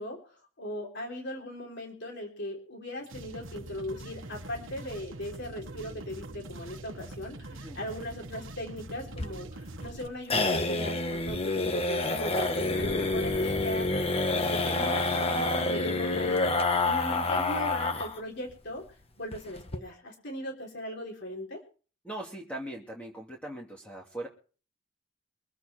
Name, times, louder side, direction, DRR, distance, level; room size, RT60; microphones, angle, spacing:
voice 1, 0.0-13.9 14.4-18.8 19.2-21.6, left 1 dB, 60° left, 1 dB, 3.7 m, -38 dB
sound 1, 3.0-10.1, right 2 dB, 75° right, 1.3 m, -44 dB
sound 2, 9.1-18.2 18.5-18.6 18.9-19.0 19.3-19.8, left 2 dB, 30° left, 1.4 m, -28 dB
voice 2, 22.0-24.3, right 1 dB, 5° left, -1 dB, 2.7 m, -40 dB
24.5 x 8.4 x 4.3 m, 0.39 s
head